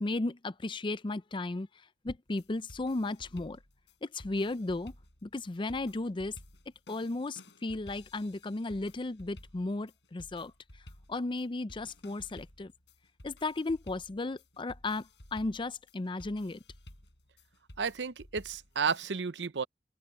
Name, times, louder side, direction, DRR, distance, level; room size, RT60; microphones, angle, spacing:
voice 1, 0.0-1.7 2.0-3.6 4.0-4.9 5.2-6.4 6.9-10.5 11.1-12.7 13.2-16.6, left 2 dB, 30° left, 0.5 m, -35 dB
sound 1, 2.3-19.1, left 1 dB, 80° left, 5.8 m, -54 dB
voice 2, 17.8-19.6, right 5 dB, 85° right, 0.7 m, -32 dB
open air
head